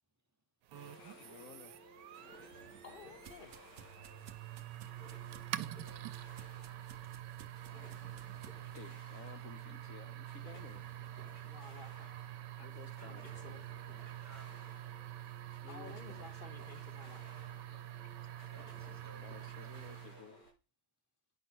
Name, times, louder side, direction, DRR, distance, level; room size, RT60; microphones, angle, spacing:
sound 1, 0.7-20.5, equal, 80° left, 5.2 m, -58 dB
sound 2, 0.7-20.3, right 13 dB, 85° right, 1.3 m, -47 dB
voice 1, 1.0-1.7 8.7-10.9 12.6-13.2 14.9-15.3 15.6-16.3 17.7-18.5 19.1-20.4, left 8 dB, 65° left, 0.9 m, -55 dB
sound 3, 2.3-8.9, right 9 dB, 60° right, 0.8 m, -58 dB
voice 2, 2.8-3.6 11.4-12.1 12.9-13.7 15.7-17.3, left 5 dB, 40° left, 0.9 m, -54 dB
voice 3, 14.2-14.7 18.5-20.1, right 3 dB, 10° right, 0.9 m, -62 dB
9.2 x 5.4 x 6.1 m
omnidirectional pair, 1.8 m